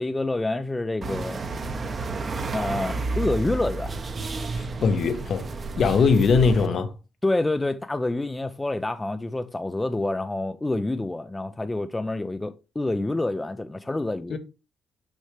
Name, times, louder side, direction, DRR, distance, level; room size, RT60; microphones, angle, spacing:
voice 1, 0.0-1.4 2.5-3.9 7.2-14.4, left 2 dB, 15° left, 0.5 m, -27 dB
sound 1, 1.0-6.7, right 3 dB, 40° right, 0.9 m, -31 dB
voice 2, 4.5-5.5 5.8-6.9 14.3-14.4, left 5 dB, 60° left, 1.0 m, -21 dB
6.4 x 5.5 x 3.2 m
cardioid pair, 90°, 0 cm